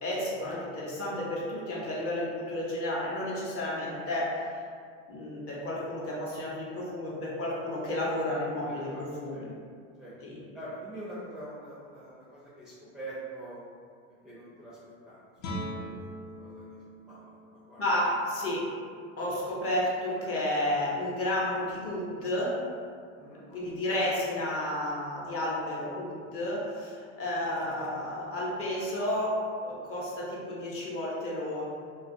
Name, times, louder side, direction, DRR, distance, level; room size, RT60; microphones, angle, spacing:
voice 1, 0.0-4.5 5.1-9.5 10.2-10.4 17.8-18.6 19.2-22.6 23.5-31.6, left 1 dB, 35° left, -5 dB, 0.8 m, -32 dB
voice 2, 8.3-9.5 10.0-10.1 10.5-13.6 14.2-14.8 15.0-15.2 15.7-16.8 17.1-17.8 23.2-23.5, right 1 dB, ahead, -10 dB, 0.4 m, -45 dB
Guitar, 15.4-20.9, equal, 70° left, 0.6 m, -43 dB
2.3 x 2.2 x 2.6 m, 2.1 s
hypercardioid pair, 95°, 42 cm